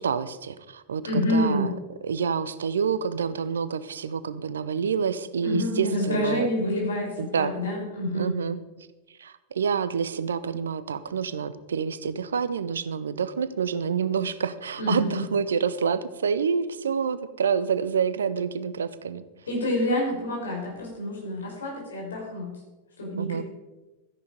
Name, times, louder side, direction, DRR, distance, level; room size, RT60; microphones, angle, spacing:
voice 1, 0.0-1.7 2.0-6.7 7.2-7.5 8.1-8.6 9.2-19.2 23.2-23.4, right 6 dB, 65° right, 14 dB, 0.8 m, -28 dB
voice 2, 1.0-1.7 5.4-8.3 14.8-15.2 19.5-22.5 23.0-23.4, left 1 dB, 70° left, -2 dB, 5.8 m, -27 dB
14.0 x 10.5 x 5.2 m, 1.1 s
figure-of-eight pair, 90°, 0 cm